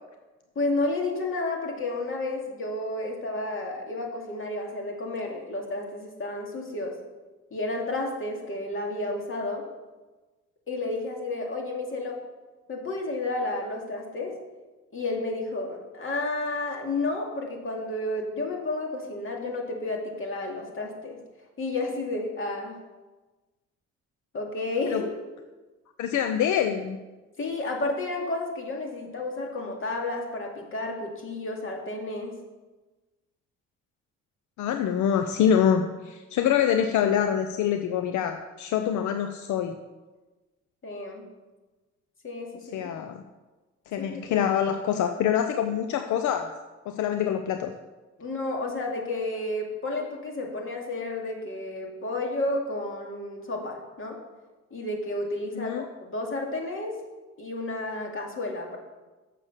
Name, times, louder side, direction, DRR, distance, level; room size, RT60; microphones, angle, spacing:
voice 1, 0.6-7.0 7.5-9.7 10.7-12.2 12.7-14.4 14.9-21.2 21.6-22.8 24.3-25.1 27.4-32.3 40.8-41.3 42.2-42.8 44.0-44.2 48.2-54.2 54.7-57.0 57.4-58.8, left 2 dB, 45° left, 0 dB, 2.3 m, -31 dB
voice 2, 26.0-27.0 34.6-39.8 42.6-43.2 43.9-46.5 46.9-47.7 55.5-55.9, left 9 dB, 75° left, 7 dB, 0.6 m, -25 dB
7.3 x 6.6 x 6.5 m, 1.2 s
cardioid pair, 90°, 30 cm